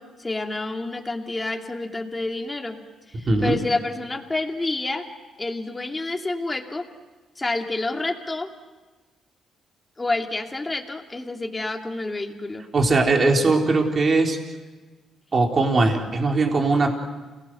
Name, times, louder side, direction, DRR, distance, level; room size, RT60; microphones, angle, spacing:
voice 1, 0.0-2.8 3.1-5.1 5.4-6.9 7.4-8.5 10.0-12.7, left 2 dB, 20° left, 3 dB, 2.6 m, -28 dB
voice 2, 3.3-3.6 12.7-14.4 15.3-16.9, right 3 dB, 40° right, 1 dB, 4.0 m, -20 dB
29.0 x 19.0 x 7.9 m, 1.3 s
cardioid pair, 90°, 0 cm